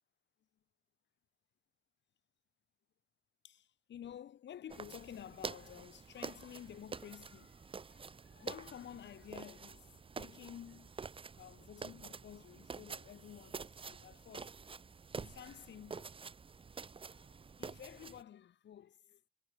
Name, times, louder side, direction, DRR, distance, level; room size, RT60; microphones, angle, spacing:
voice 1, 3.4-11.0 11.4-14.5 15.1-16.1 17.1-19.2, left 10 dB, 65° left, 3.4 m, -52 dB
sound 1, 4.7-18.2, right 5 dB, 25° right, 0.8 m, -48 dB
cardioid pair, 90°, 20 cm